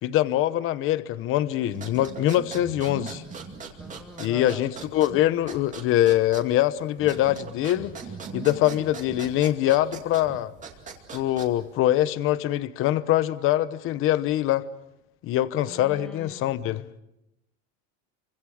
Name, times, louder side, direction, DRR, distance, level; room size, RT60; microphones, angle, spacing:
voice 1, 0.0-3.2 4.2-7.9 8.3-10.5 11.1-14.6 15.2-16.8, left 13 dB, 35° left, 0.9 m, -23 dB
sound 1, 1.7-11.8, right 5 dB, 20° right, 2.4 m, -40 dB
voice 2, 3.8-4.6 15.6-16.9, left 2 dB, ahead, 1.7 m, -42 dB
29.0 x 25.0 x 6.4 m
cardioid pair, 170°, 38 cm